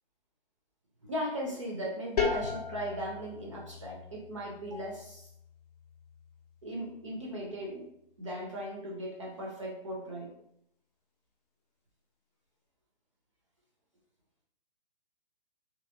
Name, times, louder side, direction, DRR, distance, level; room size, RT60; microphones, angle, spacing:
voice 1, 1.1-5.3 6.6-7.9 8.2-10.4, equal, 35° right, -2 dB, 0.4 m, -38 dB
sound 1, 2.2-7.7, left 5 dB, 45° left, 0.5 m, -38 dB
2.8 x 2.7 x 2.5 m, 0.75 s
figure-of-eight pair, 135°, 29 cm